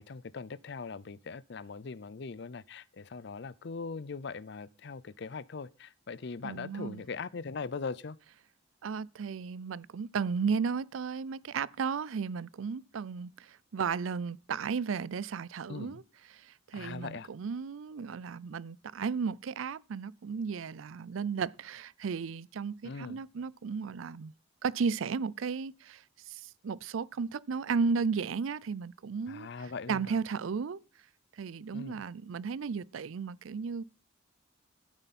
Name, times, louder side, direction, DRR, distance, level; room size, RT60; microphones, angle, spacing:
voice 1, 0.0-8.2 15.7-16.0 16.7-17.3 22.8-23.2 29.3-30.2 31.7-32.0, left 4 dB, 60° left, 0.5 m, -41 dB
voice 2, 6.4-7.0 8.8-16.0 16.3-24.3 24.6-29.5 29.9-30.8 31.4-33.8, right 5 dB, 85° right, 0.4 m, -34 dB
13.5 x 9.0 x 4.2 m
head